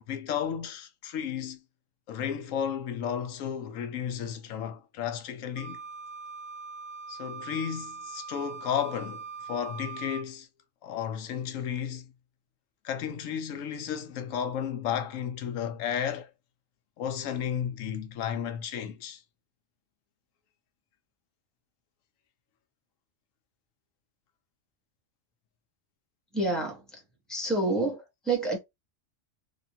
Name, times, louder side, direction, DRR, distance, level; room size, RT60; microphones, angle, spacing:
voice 1, 0.1-1.6 2.1-5.8 7.1-10.5 10.8-12.1 12.8-16.3 17.0-19.2, left 8 dB, 90° left, 1.0 m, -33 dB
Wind instrument woodwind instrument, 5.6-10.3, right 5 dB, 90° right, 1.1 m, -41 dB
voice 2, 26.3-27.0 27.3-28.6, right 2 dB, ahead, 0.9 m, -28 dB
3.0 x 2.4 x 2.7 m
omnidirectional pair, 1.3 m